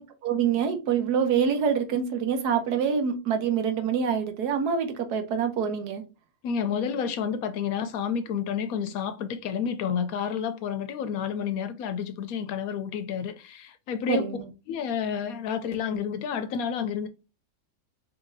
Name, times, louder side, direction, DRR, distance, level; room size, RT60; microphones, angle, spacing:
voice 1, 0.0-6.0 14.1-14.5, right 7 dB, 80° right, 1.3 m, -26 dB
voice 2, 6.4-14.4 14.7-17.1, left 7 dB, 70° left, 0.9 m, -30 dB
4.8 x 3.0 x 2.6 m
omnidirectional pair, 1.7 m